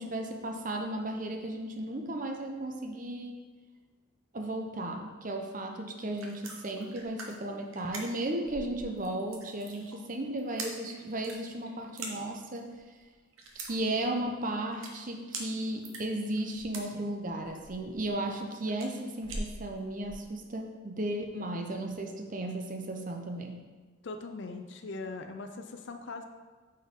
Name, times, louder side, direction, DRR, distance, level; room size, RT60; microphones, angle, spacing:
voice 1, 0.0-3.4 4.3-12.7 13.5-23.6, right 1 dB, 40° right, 3 dB, 0.7 m, -35 dB
sound 1, 5.9-20.3, right 2 dB, 85° right, 1.1 m, -44 dB
voice 2, 24.0-26.2, left 3 dB, 60° left, 6 dB, 0.5 m, -40 dB
8.6 x 4.5 x 3.7 m, 1.4 s
head